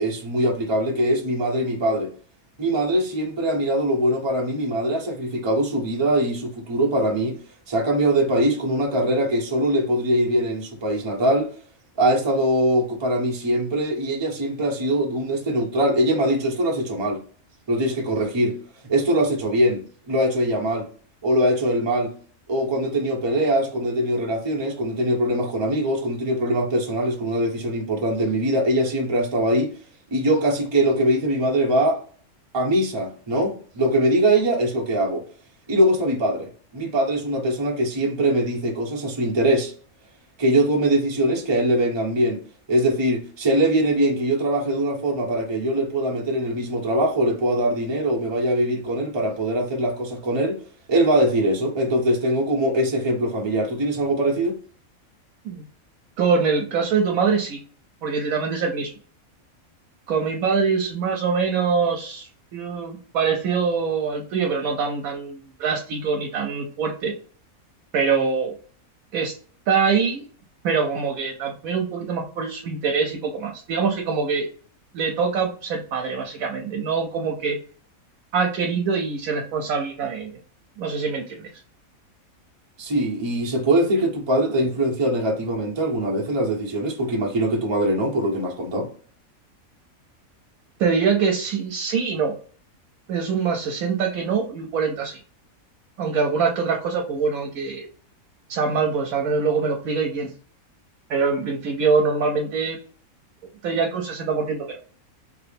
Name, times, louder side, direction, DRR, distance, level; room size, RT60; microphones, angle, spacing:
voice 1, 0.0-2.1 2.6-7.4 7.7-11.5 12.0-17.2 17.7-18.6 18.9-19.8 20.1-20.9 21.2-22.1 22.5-29.7 30.1-32.0 32.5-35.2 35.7-39.7 40.4-42.4 42.7-50.6 50.9-54.6 82.8-88.9, right 1 dB, 25° right, 0.7 m, -22 dB
voice 2, 56.2-57.6 58.0-58.9 60.1-67.1 67.9-68.5 69.1-69.4 69.7-70.3 70.6-74.5 74.9-77.6 78.3-80.3 80.8-81.5 90.8-92.3 93.1-95.2 96.0-97.9 98.5-100.3 101.1-102.8 103.6-104.8, right 5 dB, 80° right, 1.1 m, -24 dB
3.2 x 3.0 x 3.4 m
omnidirectional pair, 1.5 m